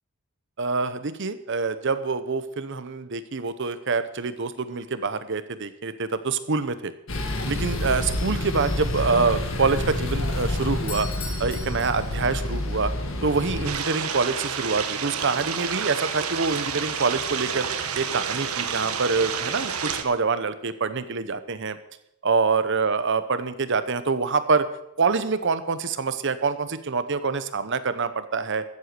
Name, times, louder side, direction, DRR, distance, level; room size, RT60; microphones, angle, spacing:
voice 1, 0.6-6.9 7.5-11.1 11.4-12.9 13.2-21.8 22.2-24.7 25.0-28.6, right 4 dB, 55° right, 12 dB, 0.9 m, -26 dB
sound 1, 7.1-13.7, left 1 dB, 65° left, 1.9 m, -28 dB
Doorbell, 10.8-12.7, left 4 dB, 80° left, 3.0 m, -40 dB
sound 2, 13.6-20.0, right 7 dB, 90° right, 1.3 m, -29 dB
14.0 x 8.0 x 6.7 m, 0.81 s
head